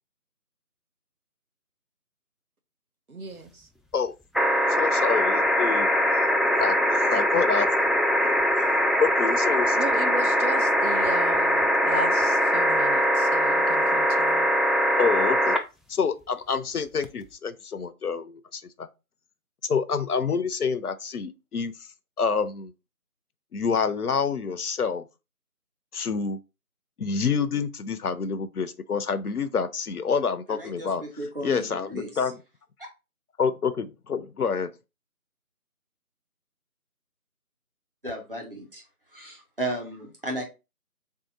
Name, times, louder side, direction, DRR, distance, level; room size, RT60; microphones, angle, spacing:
voice 1, 3.1-3.6 9.8-14.5, right 2 dB, 70° right, 0.8 m, -35 dB
sound 1, 4.3-15.6 17.0-17.1, equal, ahead, 0.3 m, -22 dB
voice 2, 4.8-5.9 6.5-7.7 8.2-8.7 9.0-9.8 15.0-15.6 15.9-18.9 19.6-21.7 22.2-22.7 23.5-25.0 25.9-26.4 27.0-32.4 33.4-34.7, left 5 dB, 75° left, 0.6 m, -27 dB
voice 3, 31.2-32.1 38.0-38.8 39.1-40.4, right 1 dB, 35° right, 1.1 m, -34 dB
3.5 x 2.8 x 3.7 m
figure-of-eight pair, 165°, 45 cm